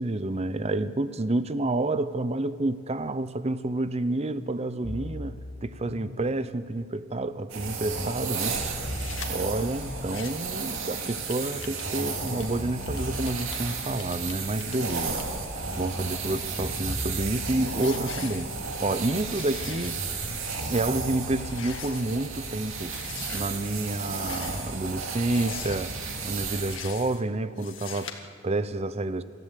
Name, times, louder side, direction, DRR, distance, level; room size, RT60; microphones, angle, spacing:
voice 1, 0.0-5.4 5.6-8.8 9.3-15.2 15.8-18.5 18.8-20.0 20.7-22.9 23.3-26.0 26.2-29.2, right 2 dB, 30° right, 0.7 m, -29 dB
sound 1, 4.8-6.7 7.6-10.6 11.6-14.7 15.6-18.6 19.6-21.0, left 1 dB, 30° left, 5.6 m, -39 dB
sound 2, 7.5-26.8, right 4 dB, 75° right, 2.6 m, -34 dB
sound 3, 8.8-9.3 9.9-10.5 10.8-15.2 15.8-16.9 17.4-17.5 17.8-19.0 19.3-19.9 20.3-20.4 20.7-20.9 21.3-22.2 22.9-23.4 24.1-24.8 25.3-26.0 26.5-27.2 27.6-28.1, left 8 dB, 65° left, 1.8 m, -43 dB
26.0 x 13.5 x 8.4 m
head